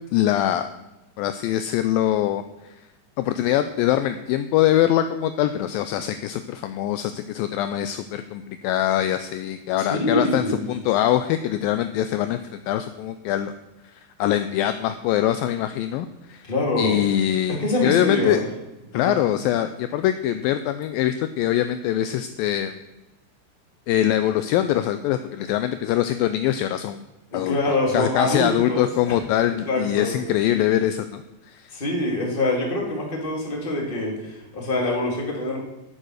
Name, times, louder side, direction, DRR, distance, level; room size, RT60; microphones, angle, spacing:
voice 1, 0.1-0.7 1.2-2.4 3.2-13.5 13.9-16.5 16.8-18.4 18.9-22.8 23.9-27.0 27.3-27.6 27.9-31.7, left 12 dB, 85° left, 10 dB, 2.1 m, -23 dB
voice 2, 9.8-10.6 16.4-17.0 17.6-18.4 18.9-19.2 27.3-29.2 29.7-30.1 31.7-35.6, left 2 dB, 15° left, 0 dB, 2.1 m, -25 dB
11.5 x 8.6 x 6.4 m, 0.99 s
omnidirectional pair, 4.6 m